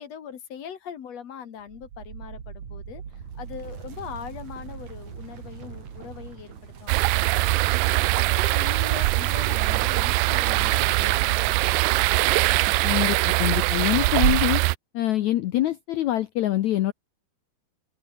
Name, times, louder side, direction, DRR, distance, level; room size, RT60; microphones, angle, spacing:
voice 1, 0.0-7.7 8.1-12.2, left 8 dB, 50° left, 2.4 m, -41 dB
sound 1, 1.6-8.5, right 7 dB, 50° right, 3.8 m, -41 dB
sound 2, 6.9-14.8, right 20 dB, 80° right, 1.9 m, -22 dB
voice 2, 12.8-14.6 14.9-16.9, left 14 dB, 75° left, 1.7 m, -25 dB
omnidirectional pair, 4.3 m